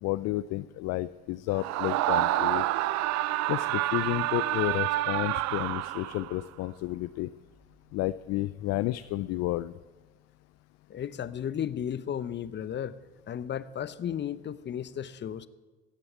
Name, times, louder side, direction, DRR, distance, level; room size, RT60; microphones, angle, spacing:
voice 1, 0.0-2.7 3.5-7.3 7.9-9.7, left 17 dB, 50° left, 15 dB, 0.4 m, -31 dB
Screaming, 1.5-6.4, right 15 dB, 55° right, 0.6 m, -28 dB
voice 2, 10.9-13.0 13.3-15.5, left 9 dB, 35° left, 16 dB, 0.8 m, -34 dB
16.0 x 6.9 x 9.4 m, 1.3 s
hypercardioid pair, 65°, 33 cm